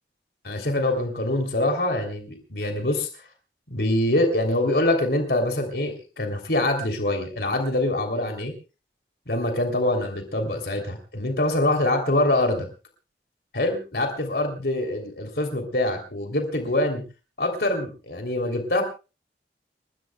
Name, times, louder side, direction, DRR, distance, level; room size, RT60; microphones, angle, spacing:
voice 1, 0.4-3.1 3.7-8.5 9.3-12.7 13.5-17.0 17.4-18.8, left 1 dB, 65° left, 4 dB, 3.2 m, -24 dB
29.5 x 14.0 x 2.3 m, 0.32 s
head